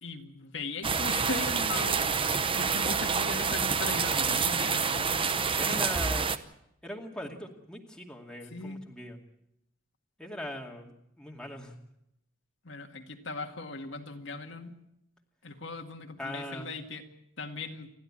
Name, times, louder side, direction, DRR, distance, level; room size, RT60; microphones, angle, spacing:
voice 1, 0.0-5.1 5.7-5.8 8.5-8.8 12.6-14.8 15.4-17.0 17.4-17.9, left 3 dB, 60° left, 3 dB, 2.0 m, -39 dB
sound 1, 0.8-6.4, right 5 dB, 25° right, 0.8 m, -28 dB
voice 2, 5.6-6.3 6.8-9.2 10.2-11.7 16.2-16.7, left 1 dB, 5° left, 0 dB, 2.4 m, -40 dB
29.0 x 12.0 x 8.7 m, 0.80 s
head